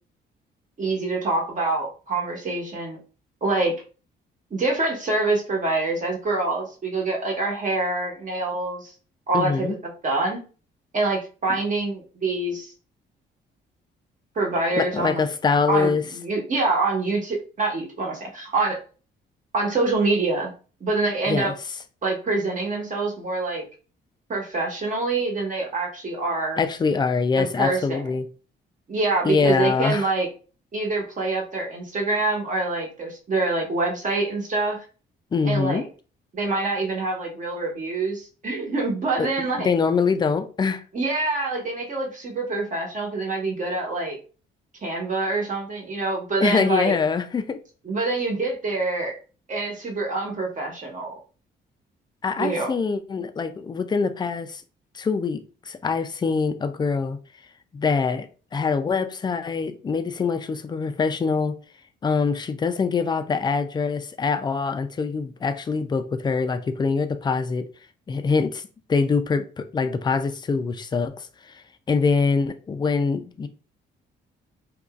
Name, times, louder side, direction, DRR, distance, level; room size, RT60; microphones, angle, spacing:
voice 1, 0.8-3.0 3.4-3.7 4.5-8.9 9.3-9.7 10.0-10.4 10.9-12.7 14.3-15.3 15.7-18.8 19.5-20.5 20.8-21.5 22.0-23.6 24.3-26.6 27.4-28.0 28.9-30.3 30.7-34.8 35.4-35.9 36.3-39.7 40.9-44.2 44.8-47.0 47.8-49.2 49.5-51.2 52.4-52.7, right 3 dB, 40° right, 1.1 m, -25 dB
voice 2, 9.3-9.8 14.8-16.0 21.3-21.5 26.6-28.3 29.2-30.1 35.3-35.8 39.2-40.8 46.4-47.6 52.2-54.6 54.9-57.2 57.7-58.3 58.5-61.6 62.0-67.7 68.1-68.6 68.9-71.1 71.9-73.5, left 5 dB, 20° left, 0.3 m, -24 dB
2.9 x 2.5 x 2.3 m
cardioid pair, 90°, 20 cm